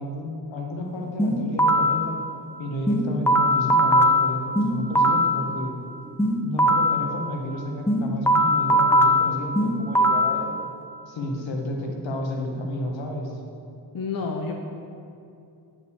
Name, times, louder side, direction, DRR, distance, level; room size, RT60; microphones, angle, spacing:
voice 1, 0.0-2.2 2.6-5.7 6.4-10.6 11.1-13.4, left 1 dB, 75° left, 1 dB, 1.5 m, -31 dB
sound 1, 1.2-2.0 2.9-5.4 6.2-7.0 7.9-10.4, equal, 5° left, 0.6 m, -20 dB
voice 2, 13.9-14.5, left 4 dB, 50° left, 3 dB, 0.8 m, -29 dB
9.2 x 5.2 x 7.0 m, 2.5 s
cardioid pair, 85°, 45 cm